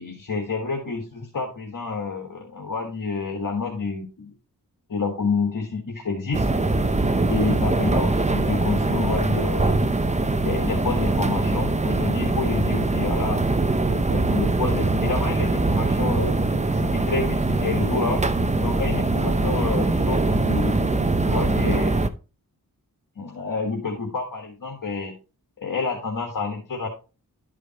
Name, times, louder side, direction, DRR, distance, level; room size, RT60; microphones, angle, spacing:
voice 1, 0.0-4.3 4.9-6.5 7.3-9.7 10.4-13.4 13.9-16.4 16.7-18.2 18.6-22.0 23.2-25.1 25.6-26.9, left 4 dB, 55° left, 1 dB, 1.5 m, -28 dB
sound 1, 6.3-22.1, right 2 dB, 20° right, 0.6 m, -22 dB
12.0 x 4.9 x 2.9 m, 0.33 s
cardioid pair, 55°, 37 cm